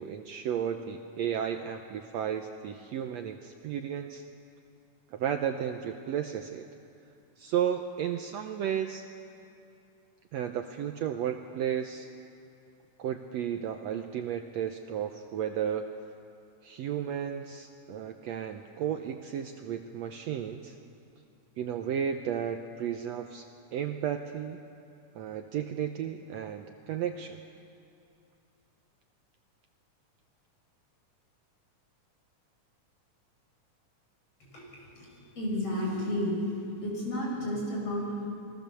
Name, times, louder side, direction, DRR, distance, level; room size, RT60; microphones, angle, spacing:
voice 1, 0.0-4.2 5.1-6.7 7.4-9.1 10.3-12.1 13.0-15.8 16.6-20.8 21.6-23.5 23.7-24.6 25.2-27.4, right 9 dB, 70° right, 6 dB, 1.7 m, -33 dB
voice 2, 34.9-36.4 36.8-38.3, left 1 dB, 45° left, -3 dB, 7.1 m, -32 dB
28.5 x 21.5 x 7.0 m, 2.6 s
omnidirectional pair, 3.6 m